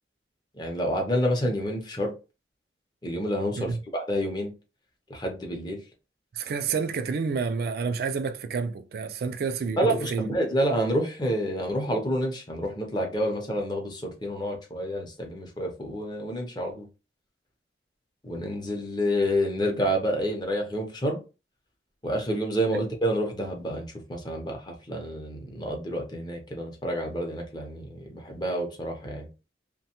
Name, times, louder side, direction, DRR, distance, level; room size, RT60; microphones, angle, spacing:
voice 1, 0.6-2.1 3.0-4.5 5.1-5.8 9.8-16.9 18.2-21.2 22.0-29.3, equal, 25° left, 0.6 m, -28 dB
voice 2, 6.3-10.3 22.7-22.8, right 5 dB, 60° right, 0.3 m, -29 dB
3.0 x 2.2 x 2.9 m
head